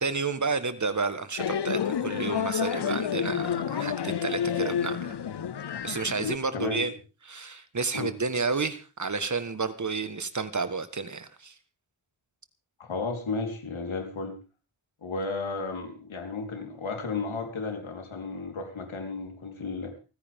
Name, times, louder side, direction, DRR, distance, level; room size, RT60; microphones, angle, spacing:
voice 1, 0.0-5.2 5.8-6.9 7.2-11.5, right 4 dB, 40° right, 12 dB, 1.5 m, -31 dB
sound 1, 1.4-6.4, left 8 dB, 60° left, 0.9 m, -29 dB
voice 2, 6.5-6.9 7.9-8.1 12.8-14.4 15.0-19.9, left 4 dB, 80° left, 3 dB, 4.1 m, -33 dB
29.0 x 9.9 x 3.7 m, 0.32 s
wide cardioid pair, 105°, 47 cm